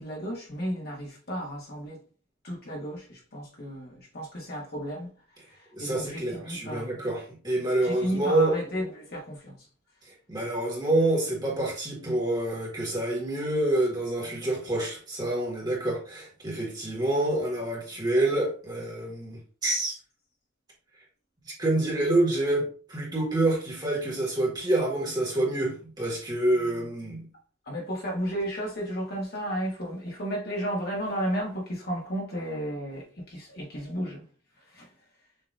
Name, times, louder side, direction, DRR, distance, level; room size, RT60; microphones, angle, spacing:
voice 1, 0.0-2.0 2.4-5.1 5.5-7.0 7.8-9.6 27.7-34.3 34.7-34.9, equal, 50° left, 1.7 m, -33 dB
voice 2, 5.7-8.5 10.3-19.9 21.6-27.3, right 1 dB, 20° right, 1.7 m, -27 dB
6.7 x 2.9 x 2.6 m
head